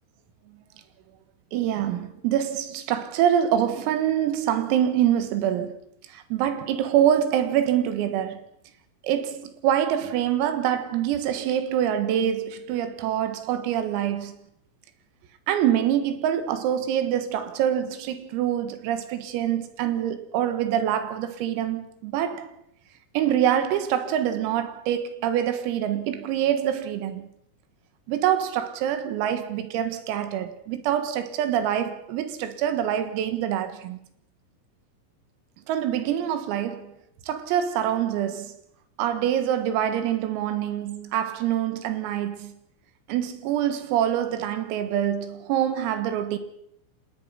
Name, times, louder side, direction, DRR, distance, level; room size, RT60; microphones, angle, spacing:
voice 1, 1.5-5.8 6.1-8.4 9.0-14.4 15.5-22.5 23.2-27.3 28.1-34.0 35.7-36.9 37.3-38.6 39.0-42.5 43.1-46.4, right 10 dB, 90° right, 4.3 m, -25 dB
26.5 x 19.5 x 5.8 m
omnidirectional pair, 6.0 m